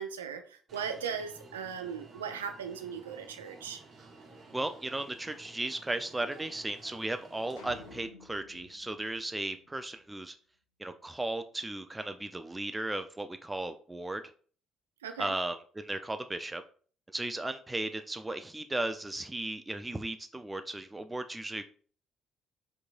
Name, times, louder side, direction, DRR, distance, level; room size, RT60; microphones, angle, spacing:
voice 1, 0.0-3.8 15.0-15.3, right 7 dB, 75° right, 7 dB, 0.4 m, -38 dB
Alarm, 0.7-8.0, right 3 dB, 45° right, 1.0 m, -53 dB
voice 2, 4.5-10.4 10.8-14.2 15.2-16.6 17.1-21.6, right 2 dB, 15° right, 8 dB, 0.4 m, -36 dB
sound 1, 7.6-10.0, left 4 dB, 75° left, 0.6 m, -53 dB
4.6 x 3.8 x 2.4 m, 0.43 s
figure-of-eight pair, 45°, 0 cm